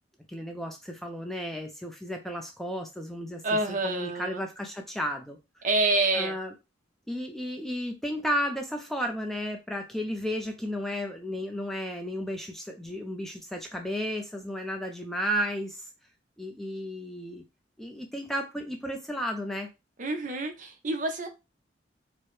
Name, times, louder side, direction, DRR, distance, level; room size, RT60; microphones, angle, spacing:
voice 1, 0.3-3.4 3.7-5.4 6.1-6.5 7.1-15.9 16.4-17.4 17.8-19.7, equal, ahead, 3 dB, 0.4 m, -33 dB
voice 2, 3.4-4.4 5.6-6.4 20.0-21.3, right 2 dB, 45° right, 4 dB, 0.6 m, -27 dB
4.5 x 2.0 x 3.1 m, 0.26 s
head